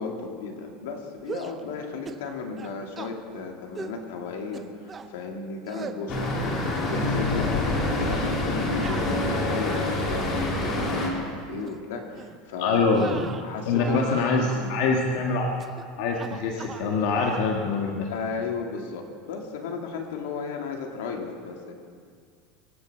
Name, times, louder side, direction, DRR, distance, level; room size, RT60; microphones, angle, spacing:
voice 1, 0.0-6.4 6.8-12.8 13.4-14.1 14.4-14.7 18.1-21.7, left 5 dB, 90° left, 2 dB, 2.6 m, -35 dB
sound 1, 1.2-1.6 2.1-2.3 2.6-3.1 3.8-4.0 4.5-5.1 5.7-6.0 6.5-7.1 7.4-7.6 8.8-9.9 10.4-10.9 11.6-11.8 12.2-12.4 12.9-14.1 14.4-14.7 15.6-15.9 16.1-16.9 17.2-17.5, right 5 dB, 15° right, 0.7 m, -39 dB
Traffic noise roadway noise, 6.1-11.1, left 2 dB, 30° left, 3.2 m, -26 dB
voice 2, 12.6-13.2 13.6-15.7 16.0-18.1, left 4 dB, 60° left, 0 dB, 1.6 m, -24 dB
24.5 x 8.7 x 6.8 m, 2.1 s
supercardioid pair, 170°, 0 cm